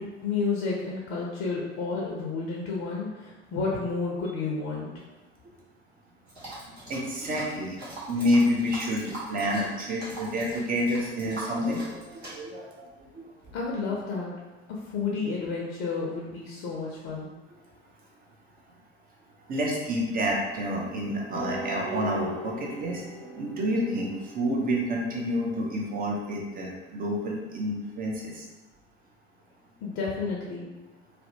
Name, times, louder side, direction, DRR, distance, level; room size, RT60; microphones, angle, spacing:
voice 1, 0.0-4.9 13.5-14.3 14.7-17.3 29.8-30.7, left 4 dB, 45° left, -3 dB, 0.5 m, -31 dB
sound 1, 6.3-12.3, right 1 dB, 85° right, 0.8 m, -42 dB
voice 2, 6.9-7.8 8.1-13.2 19.5-28.4, equal, 30° right, -1 dB, 0.6 m, -29 dB
Grand Piano Thing, 21.3-26.0, right 1 dB, 60° right, 0.9 m, -40 dB
2.6 x 2.0 x 2.7 m, 1.1 s
figure-of-eight pair, 65°, 31 cm